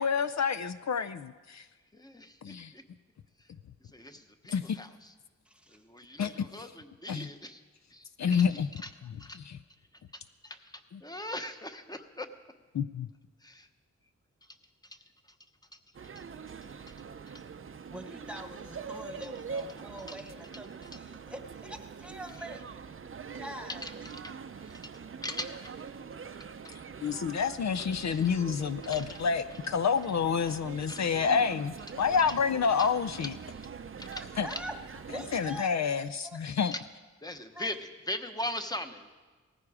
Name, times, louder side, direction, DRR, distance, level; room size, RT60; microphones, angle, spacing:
voice 1, 0.0-1.6 2.4-2.7 4.5-4.8 6.2-6.5 7.1-7.3 8.2-8.5 12.7-13.1 27.0-33.3 34.4-34.5 35.3-36.7, left 6 dB, 65° left, 12 dB, 0.5 m, -28 dB
voice 2, 1.9-2.8 3.4-3.5 3.8-5.1 5.7-7.6 7.9-8.9 9.2-9.4 10.6-12.3 13.4-13.7 14.4-14.6 14.8-15.4 15.7-15.8 16.1-16.5 17.3-17.4 20.1-20.2 20.8-21.0 22.4-22.5 23.8-23.9 24.2-24.3 24.6-24.9 25.2-25.7 26.4-26.9 27.8-28.3 28.8-29.1 29.5-29.6 30.9-31.0 32.2-32.3 32.8-32.9 33.2-33.7 34.0-34.6 36.7-36.9 37.2-39.1, left 1 dB, 15° left, 7 dB, 0.9 m, -41 dB
voice 3, 5.4-5.8 17.9-22.6 23.3-24.0 34.4-34.7 35.1-36.0 36.2-36.4 37.5-37.7, right 1 dB, 5° right, 5 dB, 1.2 m, -44 dB
sound 1, 15.9-35.6, right 6 dB, 45° right, 0.5 m, -44 dB
18.5 x 14.5 x 4.9 m, 1.3 s
wide cardioid pair, 120°, 30 cm